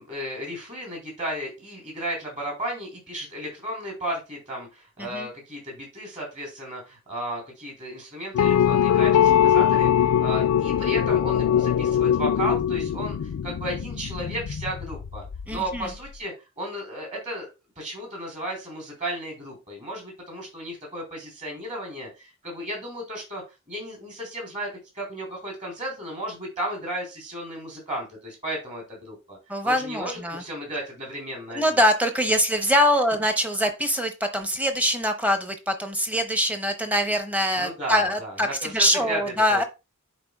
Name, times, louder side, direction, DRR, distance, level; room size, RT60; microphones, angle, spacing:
voice 1, 0.0-15.2 15.5-17.5 17.8-24.7 24.9-29.4 29.6-31.6 37.6-39.7, right 1 dB, 35° right, -1 dB, 3.8 m, -34 dB
sound 1, 8.3-15.9, left 9 dB, 80° left, 0.3 m, -22 dB
voice 2, 15.5-15.9 29.5-30.4 31.5-39.6, equal, 5° right, 6 dB, 0.8 m, -23 dB
10.5 x 4.2 x 2.3 m, 0.26 s
head